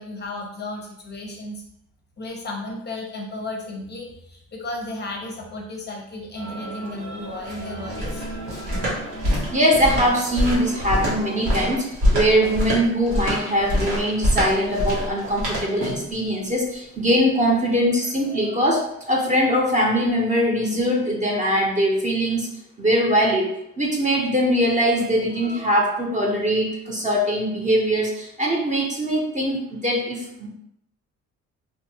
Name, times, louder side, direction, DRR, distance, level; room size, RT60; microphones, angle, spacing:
voice 1, 0.0-1.6 2.2-8.3, left 2 dB, 35° left, 0 dB, 0.5 m, -34 dB
sound 1, 6.4-11.6, right 1 dB, 65° right, 1.1 m, -37 dB
sound 2, 7.2-16.1, equal, 90° right, 1.1 m, -25 dB
voice 2, 9.2-11.9 12.1-22.5 22.8-23.5 23.8-30.5, equal, 25° right, -1 dB, 0.7 m, -22 dB
2.6 x 2.4 x 2.7 m, 0.78 s
cardioid pair, 90°, 30 cm